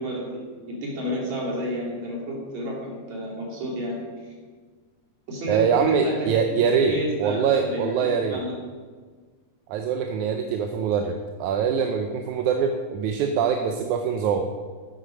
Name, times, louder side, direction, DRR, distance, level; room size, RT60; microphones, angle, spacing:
voice 1, 0.0-4.0 4.2-4.3 5.3-8.6, equal, 65° right, -3 dB, 3.9 m, -31 dB
voice 2, 5.5-8.4 9.7-14.5, right 6 dB, 80° right, 5 dB, 2.0 m, -23 dB
10.0 x 8.3 x 6.3 m, 1.5 s
omnidirectional pair, 3.5 m